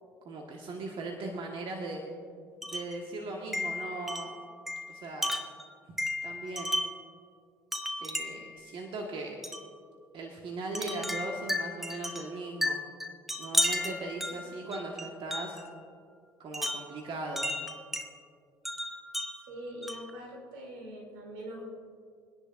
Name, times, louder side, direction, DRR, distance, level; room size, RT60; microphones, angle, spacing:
voice 1, 0.2-2.0 2.6-4.3 4.9-5.3 6.2-6.7 8.0-9.3 10.1-12.8 13.4-15.6 16.4-17.5, right 2 dB, 50° right, 1 dB, 1.5 m, -38 dB
Wind chime, 2.6-3.0 3.5-7.1 7.7-8.5 9.4-9.7 10.8-15.7 16.5-18.1 18.7-20.2, left 1 dB, ahead, 1.1 m, -34 dB
voice 2, 19.5-21.7, equal, 80° right, 0 dB, 3.0 m, -43 dB
22.5 x 10.5 x 2.6 m, 2.2 s
hypercardioid pair, 65°, 11 cm